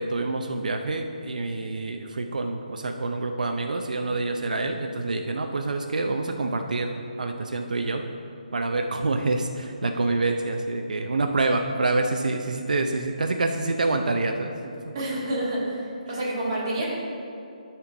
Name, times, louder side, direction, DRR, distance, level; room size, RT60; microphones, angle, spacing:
voice 1, 0.0-8.0 8.5-15.1, right 2 dB, 80° right, 4 dB, 0.6 m, -27 dB
voice 2, 14.9-16.8, right 1 dB, 25° right, -8 dB, 2.0 m, -28 dB
12.5 x 4.5 x 3.8 m, 2.6 s
hypercardioid pair, 175°, 4 cm